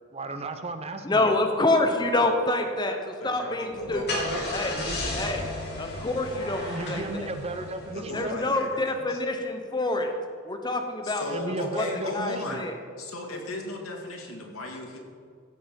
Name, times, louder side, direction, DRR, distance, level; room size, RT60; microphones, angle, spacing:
voice 1, 0.1-1.3 4.1-4.4 4.7-5.0 6.6-8.4 11.3-12.6, right 2 dB, 30° right, 8 dB, 0.7 m, -34 dB
voice 2, 1.0-4.0 4.5-4.7 5.1-5.5 5.8-7.3 8.1-10.1 10.4-11.9 12.1-12.7, left 2 dB, 20° left, 4 dB, 0.9 m, -27 dB
voice 3, 3.2-5.2 7.9-9.2 11.0-12.7 13.0-15.0, left 2 dB, 90° left, 0 dB, 2.2 m, -36 dB
Car / Engine starting, 3.7-8.4, left 2 dB, 55° left, 2.7 m, -34 dB
15.5 x 6.8 x 5.3 m, 2.2 s
head